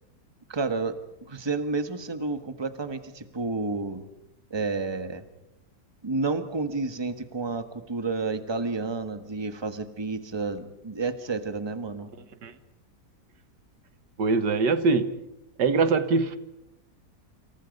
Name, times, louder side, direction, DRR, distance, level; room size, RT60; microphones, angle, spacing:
voice 1, 0.5-0.9 1.2-4.1 4.5-5.2 6.0-12.1, right 3 dB, 15° right, 1.4 m, -30 dB
voice 2, 14.2-15.1 15.6-16.4, right 4 dB, 85° right, 2.0 m, -23 dB
29.0 x 27.0 x 5.4 m
omnidirectional pair, 1.8 m